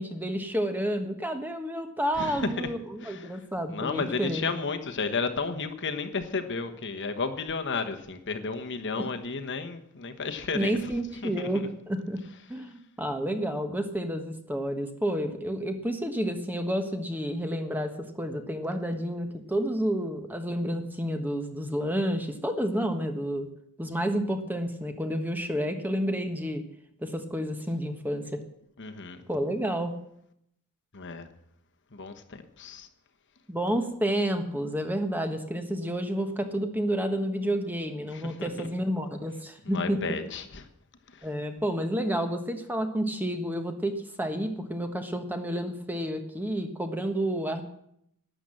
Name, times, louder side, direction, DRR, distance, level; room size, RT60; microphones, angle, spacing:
voice 1, 0.0-4.5 9.0-9.1 10.5-12.2 12.5-23.5 23.8-26.6 27.0-28.4 29.3-29.9 33.5-40.0 41.2-47.6, equal, 10° right, 6 dB, 1.2 m, -30 dB
voice 2, 2.2-2.7 3.0-3.4 3.7-10.9 11.2-11.5 28.8-29.2 30.9-31.3 31.9-32.9 38.1-38.7 39.6-40.7 41.1-41.3, left 4 dB, 55° left, 7 dB, 1.2 m, -33 dB
12.0 x 10.5 x 7.7 m, 0.74 s
head